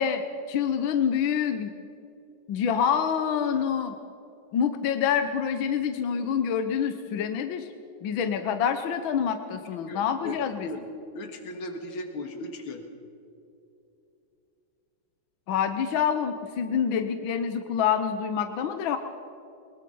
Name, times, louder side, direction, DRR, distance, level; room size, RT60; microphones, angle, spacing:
voice 1, 0.0-1.7 2.5-4.0 4.5-7.7 8.0-10.7 15.5-19.0, left 7 dB, 75° left, 8 dB, 1.7 m, -26 dB
voice 2, 9.9-10.9 11.1-12.8, left 1 dB, 90° left, 5 dB, 2.5 m, -37 dB
22.5 x 21.0 x 5.5 m, 2.7 s
omnidirectional pair, 2.2 m